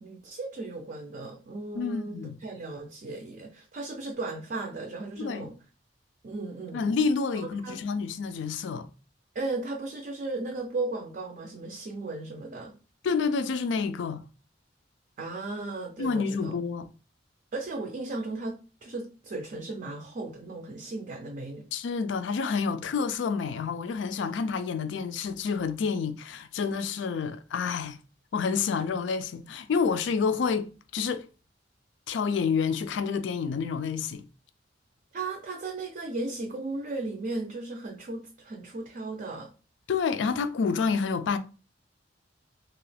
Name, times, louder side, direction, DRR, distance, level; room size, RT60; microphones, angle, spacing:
voice 1, 0.0-5.6 6.2-6.9 7.6-7.8 9.3-12.8 15.2-16.5 17.5-21.7 35.1-39.5, right 3 dB, 45° right, 0.4 m, -36 dB
voice 2, 1.8-2.4 5.2-5.5 6.7-8.9 13.0-14.2 16.0-16.9 21.7-28.0 28.3-31.3 32.1-34.3 39.9-41.4, left 5 dB, 75° left, 0.4 m, -28 dB
2.8 x 2.3 x 3.2 m
head